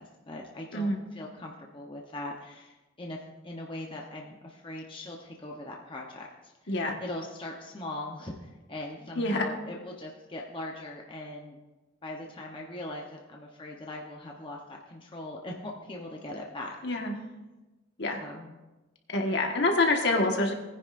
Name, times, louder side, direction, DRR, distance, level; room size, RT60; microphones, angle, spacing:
voice 1, 0.0-3.2 3.4-11.6 12.0-16.8 18.2-18.5, left 1 dB, 25° left, -1 dB, 0.9 m, -40 dB
voice 2, 6.7-7.0 9.1-9.4 16.8-17.1 18.0-18.2 19.1-20.5, left 2 dB, 55° left, 2 dB, 1.5 m, -26 dB
20.0 x 10.0 x 2.6 m, 1.1 s
head